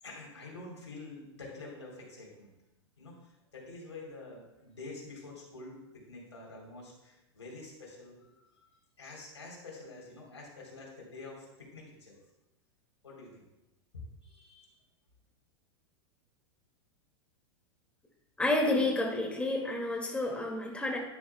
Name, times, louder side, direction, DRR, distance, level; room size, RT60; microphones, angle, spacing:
voice 1, 0.0-2.5 3.0-8.7 9.0-12.2 13.0-13.5 13.9-14.7, left 3 dB, 85° left, -2 dB, 3.5 m, -47 dB
voice 2, 18.4-21.0, left 2 dB, 10° left, 1 dB, 2.2 m, -30 dB
10.5 x 10.0 x 2.3 m, 0.94 s
hypercardioid pair, 95°, 14 cm